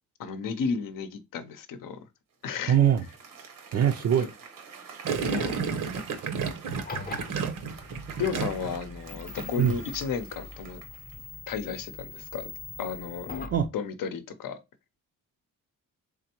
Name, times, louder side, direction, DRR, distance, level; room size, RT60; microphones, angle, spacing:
voice 1, 0.2-2.0 2.4-2.8 4.2-4.3 5.2-5.5 8.2-10.8 11.5-12.5 12.8-13.3 13.7-14.6, left 6 dB, 75° left, 0.7 m, -33 dB
Applause, 2.4-11.4, right 6 dB, 80° right, 1.1 m, -47 dB
voice 2, 2.7-3.1 3.7-4.3 9.6-9.7 13.5-13.7, right 9 dB, 50° right, 0.4 m, -22 dB
Gurgling, 5.1-8.8 9.1-9.5, right 6 dB, 65° right, 0.8 m, -31 dB
sound 1, 6.7-13.7, left 3 dB, 30° left, 0.6 m, -42 dB
3.7 x 3.4 x 2.9 m
cardioid pair, 110°, 33 cm